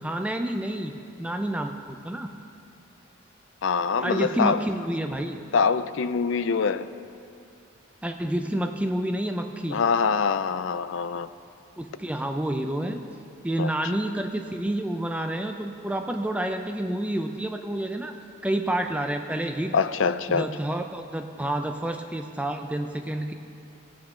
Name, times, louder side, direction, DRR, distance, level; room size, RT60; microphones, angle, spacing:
voice 1, 0.0-2.3 4.0-5.4 8.0-9.8 11.8-13.0 13.4-18.1 18.4-19.7 20.3-23.3, right 1 dB, 5° right, 5 dB, 0.4 m, -29 dB
voice 2, 3.6-4.6 5.5-6.9 9.7-11.3 13.6-13.7 19.7-20.5, left 5 dB, 65° left, 13 dB, 0.4 m, -24 dB
18.0 x 8.8 x 3.7 m, 2.5 s
head